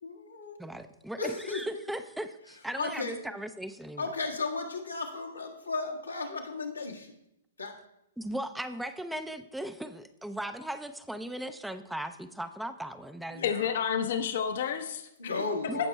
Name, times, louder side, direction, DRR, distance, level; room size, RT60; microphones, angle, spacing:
voice 1, 0.0-0.6 1.2-1.6 2.8-3.2 4.0-7.1 7.6-7.7 13.3-13.7 15.2-15.9, left 3 dB, 90° left, 1.4 m, -35 dB
voice 2, 0.6-4.1 8.2-13.5 15.7-15.8, right 1 dB, 5° right, 0.4 m, -38 dB
voice 3, 13.4-15.3 15.8-15.9, left 7 dB, 60° left, 0.7 m, -30 dB
16.5 x 6.0 x 2.2 m
figure-of-eight pair, 115°, 0 cm